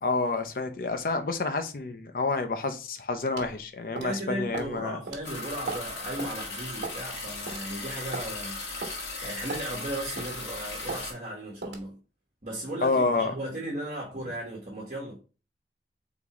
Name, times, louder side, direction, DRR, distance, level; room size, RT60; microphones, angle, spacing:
voice 1, 0.0-5.0 12.8-13.3, left 3 dB, 55° left, 0.5 m, -28 dB
sound 1, 3.4-3.6 4.0-4.2 4.5-4.7 5.1-5.2 5.7-5.9 6.2-6.4 6.8-7.1 7.5-7.6 8.1-8.3 8.8-9.0 9.5-9.7 10.2-10.4 10.9-11.0 11.6-11.9, right 4 dB, 85° right, 1.2 m, -36 dB
voice 2, 4.0-12.0 12.4-15.2, right 1 dB, 45° right, 1.3 m, -36 dB
sound 2, 5.2-11.1, left 3 dB, 85° left, 1.8 m, -37 dB
3.9 x 3.6 x 2.9 m
head